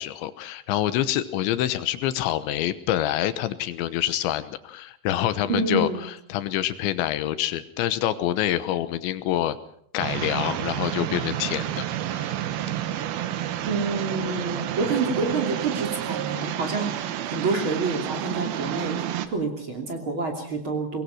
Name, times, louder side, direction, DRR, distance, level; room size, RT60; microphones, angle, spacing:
voice 1, 0.0-9.6 9.9-12.3, left 12 dB, 80° left, 12 dB, 3.2 m, -26 dB
voice 2, 5.5-6.0 13.6-18.9 19.3-21.0, right 3 dB, 30° right, 3 dB, 2.8 m, -28 dB
sound 1, 10.0-19.3, right 11 dB, 70° right, 2.5 m, -30 dB
23.5 x 20.5 x 5.8 m, 0.67 s
omnidirectional pair, 5.5 m